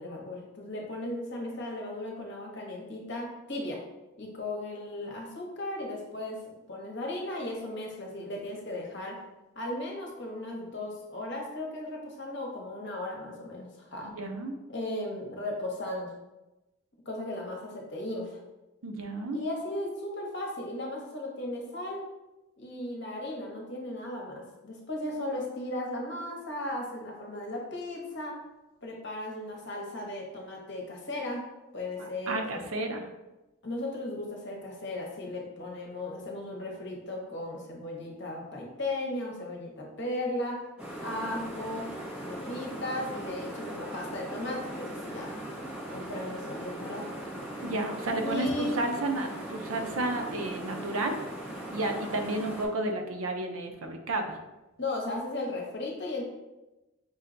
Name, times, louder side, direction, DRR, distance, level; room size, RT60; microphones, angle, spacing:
voice 1, 0.0-3.8 4.2-9.2 9.5-14.1 14.7-16.1 17.0-18.4 19.3-22.0 22.6-28.3 28.8-31.5 31.7-32.7 33.6-40.7 41.0-41.9 42.2-45.4 45.9-47.1 48.2-48.8 54.8-56.2, left 1 dB, 55° left, -1 dB, 0.9 m, -36 dB
voice 2, 14.2-14.5 18.8-19.4 32.0-33.1 47.6-51.2 51.7-54.4, right 2 dB, 75° right, 4 dB, 0.6 m, -32 dB
sound 1, 40.8-52.6, right 1 dB, 5° right, 0.7 m, -39 dB
5.4 x 2.2 x 3.8 m, 1.0 s
head